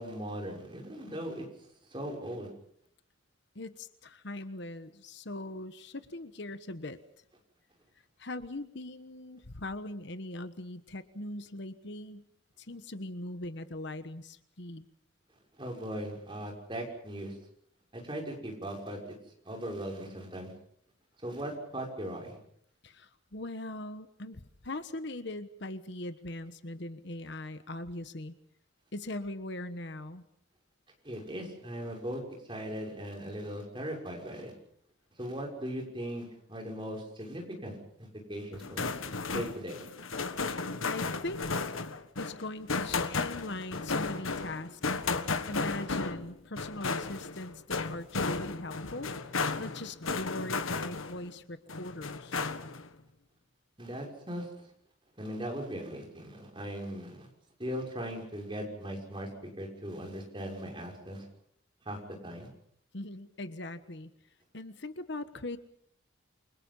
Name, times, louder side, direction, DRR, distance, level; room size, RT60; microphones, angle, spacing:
voice 1, 0.0-1.5 1.9-2.5 15.5-17.4 17.9-19.2 19.4-20.5 21.2-22.4 31.0-32.2 32.5-34.5 35.2-39.0 39.3-39.8 53.8-54.5 55.2-57.3 57.6-61.3 61.8-62.5, equal, 25° right, 1 dB, 6.2 m, -39 dB
voice 2, 3.5-7.0 8.2-12.2 12.6-14.9 22.8-28.3 28.9-30.2 40.8-41.8 42.2-45.0 45.5-52.4 62.9-64.1 64.5-65.6, left 2 dB, 55° left, 11 dB, 1.2 m, -40 dB
sound 1, 38.5-51.3 51.7-52.9, left 4 dB, 85° left, 1.5 m, -34 dB
29.0 x 24.5 x 5.6 m, 0.66 s
head